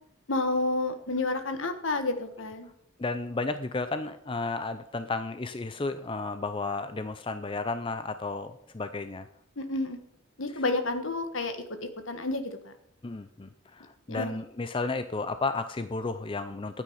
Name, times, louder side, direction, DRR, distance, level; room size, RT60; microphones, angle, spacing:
voice 1, 0.3-2.7 9.6-10.0 10.4-12.7 14.1-14.4, left 2 dB, 70° left, 8 dB, 1.5 m, -30 dB
voice 2, 3.0-9.2 13.0-13.5 13.8-16.8, left 3 dB, 25° left, 10 dB, 0.5 m, -33 dB
12.5 x 9.1 x 5.7 m, 0.73 s
head